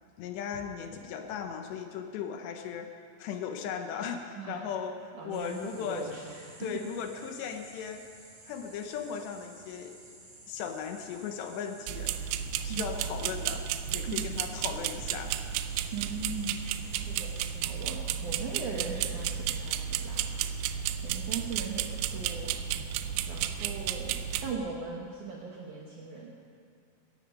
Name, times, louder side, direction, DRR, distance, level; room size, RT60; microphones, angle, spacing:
voice 1, 0.2-6.1 6.6-8.0 8.5-9.9 10.5-12.3 12.6-15.4, left 7 dB, 75° left, 5 dB, 2.9 m, -37 dB
voice 2, 4.4-4.7 5.2-6.7 12.7-12.9 14.1-14.2 15.9-16.5 17.1-20.3 21.0-22.6 23.3-26.3, right 4 dB, 70° right, -2 dB, 1.9 m, -39 dB
sound 1, 5.3-17.6, right 2 dB, 45° right, 6.5 m, -53 dB
sound 2, 11.9-24.5, right 9 dB, 85° right, 2.4 m, -33 dB
17.0 x 14.5 x 5.4 m, 2.2 s
omnidirectional pair, 5.4 m